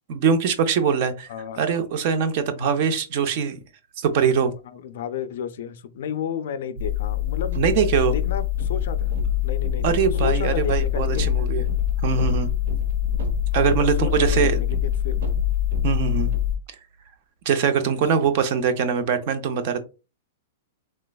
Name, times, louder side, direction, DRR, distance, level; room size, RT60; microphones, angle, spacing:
voice 1, 0.1-1.3 1.6-3.6 4.0-4.5 7.6-8.1 9.8-11.6 12.0-12.5 13.5-14.6 15.8-16.3 17.5-19.8, right 6 dB, 35° right, 0.5 m, -22 dB
voice 2, 1.3-1.6 4.7-7.6 8.1-9.1 9.4-11.3 13.6-15.2, left 8 dB, 55° left, 0.3 m, -32 dB
sound 1, 6.8-16.6, left 9 dB, 70° right, 0.8 m, -24 dB
3.3 x 3.0 x 2.2 m
supercardioid pair, 175°, 0 cm